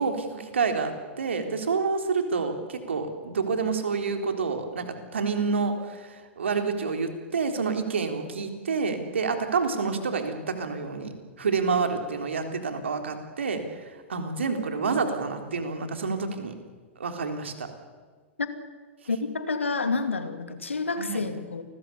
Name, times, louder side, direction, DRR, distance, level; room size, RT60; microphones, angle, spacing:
voice 1, 0.0-13.6 14.1-16.5 17.0-17.7 21.0-21.3, right 4 dB, 75° right, 5 dB, 3.8 m, -28 dB
voice 2, 19.1-21.6, left 4 dB, 80° left, 9 dB, 2.6 m, -29 dB
29.0 x 21.0 x 7.1 m, 1.5 s
figure-of-eight pair, 100°, 7 cm